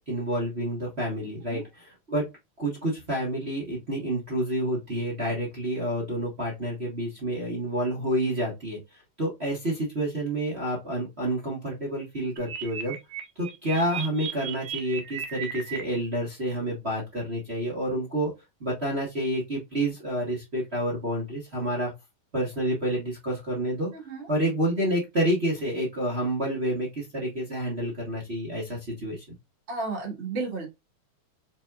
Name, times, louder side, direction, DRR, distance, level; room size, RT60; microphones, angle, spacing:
voice 1, 0.1-2.3 2.6-13.0 13.3-18.3 18.6-21.9 22.3-23.9 24.3-29.2, right 1 dB, 50° right, 0.7 m, -29 dB
sound 1, 12.4-15.8, right 7 dB, 70° right, 1.5 m, -35 dB
voice 2, 23.9-24.3 29.7-30.7, right 3 dB, 30° right, 1.2 m, -32 dB
4.4 x 4.1 x 2.3 m
omnidirectional pair, 3.7 m